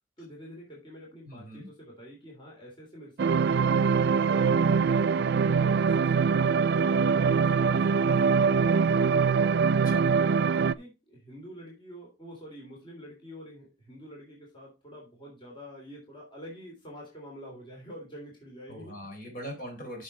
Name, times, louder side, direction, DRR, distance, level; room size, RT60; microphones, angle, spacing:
voice 1, 0.2-3.9 4.2-5.1 5.4-8.6 10.3-18.9, equal, 25° left, -2 dB, 3.3 m, -46 dB
voice 2, 1.2-1.7 9.7-10.0 18.7-20.0, equal, 50° left, 2 dB, 3.8 m, -41 dB
sound 1, 3.2-10.7, right 5 dB, 65° right, 0.4 m, -23 dB
8.5 x 6.4 x 4.2 m, 0.25 s
head